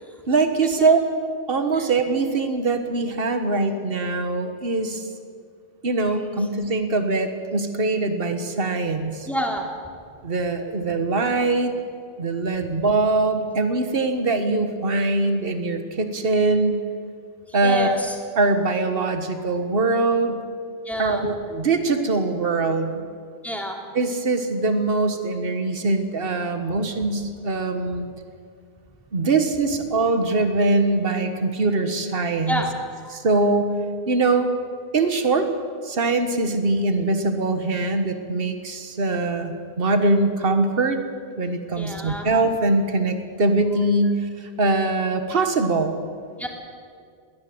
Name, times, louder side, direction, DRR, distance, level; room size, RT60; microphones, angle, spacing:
voice 1, 0.3-1.0 1.5-5.1 5.8-9.3 10.2-11.7 12.2-16.8 17.5-18.1 18.4-20.4 21.0-23.0 23.9-28.1 29.1-32.6 33.1-33.7 34.1-34.5 34.9-35.5 35.8-41.0 41.4-46.0, right 3 dB, 65° right, 8 dB, 1.7 m, -22 dB
voice 2, 9.3-9.7 17.5-18.1 20.8-21.2 23.4-23.8 32.5-32.7 33.0-33.2 41.7-42.3 46.4-46.5, equal, ahead, 1 dB, 3.0 m, -28 dB
21.0 x 18.0 x 7.9 m, 2.2 s
omnidirectional pair, 1.0 m